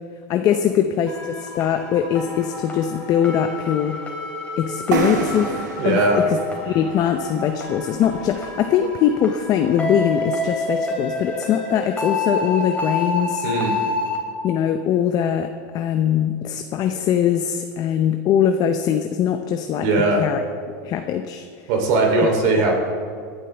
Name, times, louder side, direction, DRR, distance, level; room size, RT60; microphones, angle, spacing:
voice 1, 0.3-4.0 4.6-5.5 5.8-6.4 6.6-13.5 14.4-19.9 20.2-20.4 20.8-21.5, left 9 dB, 40° left, 6 dB, 0.7 m, -21 dB
sound 1, 1.1-14.2, left 2 dB, 15° left, 3.2 m, -29 dB
sound 2, 4.9-8.5, right 6 dB, 90° right, 1.5 m, -29 dB
voice 2, 5.8-6.2 13.4-13.8 19.8-20.2 21.7-22.7, right 2 dB, 65° right, 2 dB, 3.3 m, -19 dB
18.0 x 11.5 x 3.5 m, 2.1 s
supercardioid pair, 115°, 9 cm